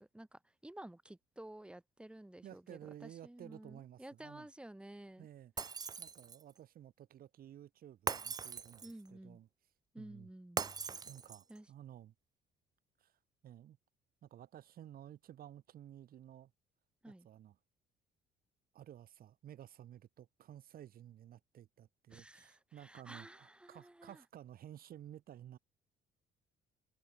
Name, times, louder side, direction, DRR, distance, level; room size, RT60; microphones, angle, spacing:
voice 1, 0.0-5.3 8.8-9.4 9.9-10.6 11.5-11.7 17.0-17.3 22.1-24.2, right 1 dB, 5° right, 2.3 m, -52 dB
voice 2, 2.4-4.5 5.2-9.5 10.0-10.3 11.0-12.1 13.0-13.8 14.2-16.5 17.1-17.6 18.7-25.6, right 11 dB, 60° right, 7.5 m, -54 dB
Shatter, 5.6-6.5 8.1-9.1 10.6-11.6, right 6 dB, 25° right, 0.5 m, -40 dB
cardioid pair, 110°, 17 cm